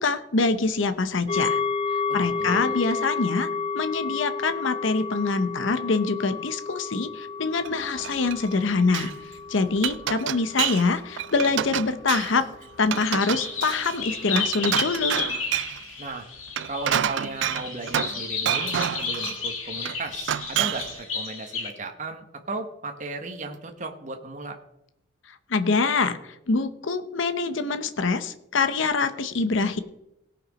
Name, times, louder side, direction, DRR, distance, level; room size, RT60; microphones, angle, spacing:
voice 1, 0.0-1.6 2.1-3.5 3.7-12.5 12.8-15.2 25.3-29.8, left 4 dB, 65° left, 11 dB, 0.7 m, -25 dB
sound 1, 1.3-12.9 13.3-13.4, left 5 dB, 25° left, 0.4 m, -32 dB
voice 2, 2.1-2.8 16.0-16.3 16.7-24.6, right 3 dB, 35° right, 4 dB, 1.2 m, -36 dB
Glass, 7.6-8.5 8.8-9.1 9.6-10.9 11.2-12.4 12.9-15.8 16.4-18.2 18.5-19.4 19.9-21.0, right 10 dB, 60° right, 0.3 m, -28 dB
sound 2, 12.9-21.7, left 5 dB, 85° left, 2.1 m, -32 dB
17.5 x 5.9 x 5.2 m, 0.83 s
head